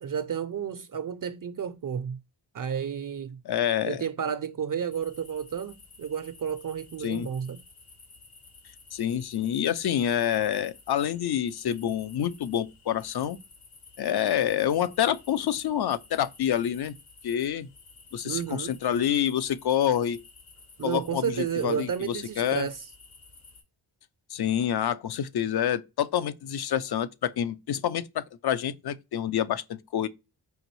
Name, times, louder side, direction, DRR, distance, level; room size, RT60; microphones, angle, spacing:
voice 1, 0.0-2.2 2.5-3.4 3.9-7.6 18.2-18.8 20.8-22.8, right 8 dB, 40° right, 0.5 m, -31 dB
voice 2, 3.4-4.0 7.0-7.3 8.9-13.4 14.0-16.9 17.2-17.7 18.1-20.2 20.8-22.7 24.3-30.1, left 10 dB, 50° left, 0.6 m, -27 dB
sound 1, 4.9-23.6, left 4 dB, 70° left, 1.9 m, -53 dB
5.0 x 2.6 x 2.9 m
supercardioid pair, 40°, 49 cm